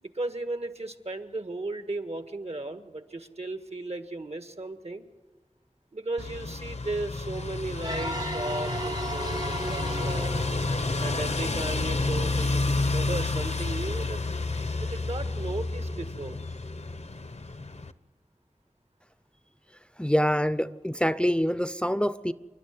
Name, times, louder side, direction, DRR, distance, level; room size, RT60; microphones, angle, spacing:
voice 1, 0.0-5.0 5.9-10.3 11.0-14.2 14.8-16.4, right 2 dB, 60° right, 7 dB, 1.7 m, -35 dB
sound 1, 6.2-17.9, left 3 dB, 70° left, 0.9 m, -30 dB
sound 2, 7.8-12.4, right 1 dB, 35° right, 0.8 m, -36 dB
voice 2, 20.0-22.3, equal, 10° left, 13 dB, 0.6 m, -25 dB
28.0 x 11.5 x 9.6 m, 1.2 s
wide cardioid pair, 50°, 12 cm